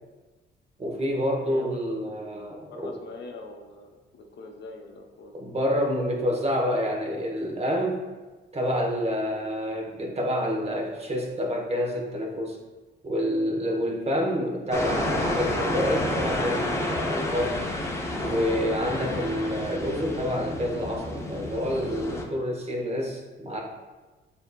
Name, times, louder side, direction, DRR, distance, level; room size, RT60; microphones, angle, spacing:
voice 1, 0.8-2.9 5.3-8.0 8.5-12.6 13.0-17.7 18.2-23.6, equal, 30° right, -1 dB, 0.9 m, -28 dB
voice 2, 1.4-2.4 2.7-5.3, left 3 dB, 60° left, 2 dB, 0.7 m, -43 dB
sound 1, 14.7-22.2, left 1 dB, 15° left, 0.6 m, -30 dB
7.2 x 2.7 x 2.2 m, 1.3 s
cardioid pair, 90°, 20 cm